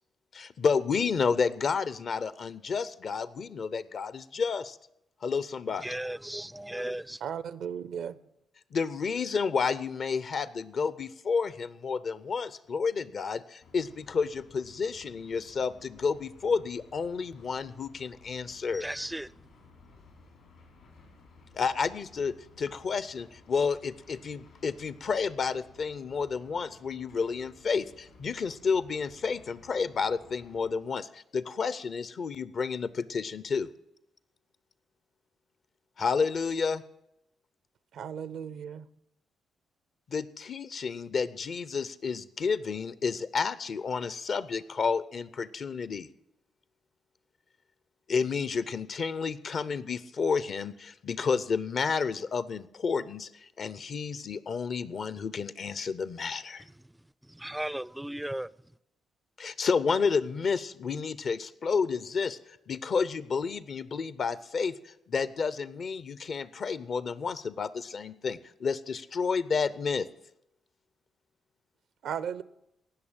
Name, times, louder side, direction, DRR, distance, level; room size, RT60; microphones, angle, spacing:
voice 1, 0.3-4.8 5.2-5.9 8.7-18.9 21.5-33.7 36.0-36.8 40.1-46.1 48.1-56.6 59.4-70.1, left 5 dB, 55° left, 0.6 m, -30 dB
voice 2, 5.8-7.2 18.7-19.3 56.6-56.7 57.2-58.5, right 1 dB, 10° right, 0.4 m, -36 dB
voice 3, 7.2-8.2 38.0-38.8 72.0-72.4, right 8 dB, 70° right, 0.5 m, -35 dB
sound 1, 13.6-30.7, left 3 dB, 80° left, 3.9 m, -57 dB
17.5 x 6.4 x 7.4 m
supercardioid pair, 55°, 0 cm